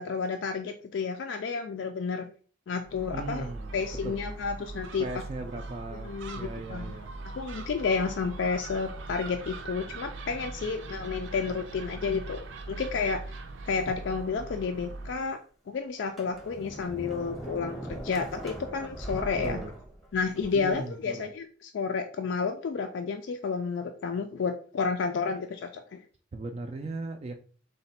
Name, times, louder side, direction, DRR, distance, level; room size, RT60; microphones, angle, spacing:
voice 1, 0.0-2.3 2.7-3.5 3.7-5.1 5.9-6.9 7.4-13.2 13.7-15.4 15.7-19.6 20.1-26.0, left 5 dB, 70° left, 5 dB, 0.4 m, -31 dB
Gull seagull, 2.8-15.3, right 3 dB, 90° right, 0.5 m, -41 dB
voice 2, 3.1-3.8 4.0-4.2 5.0-7.1 19.4-19.7 20.5-21.2 26.3-27.4, right 2 dB, 35° right, 5 dB, 0.3 m, -38 dB
Sliding door, 13.8-14.7 15.3-15.4 16.0-20.8, right 1 dB, ahead, 0.7 m, -40 dB
3.9 x 2.2 x 4.1 m, 0.41 s
head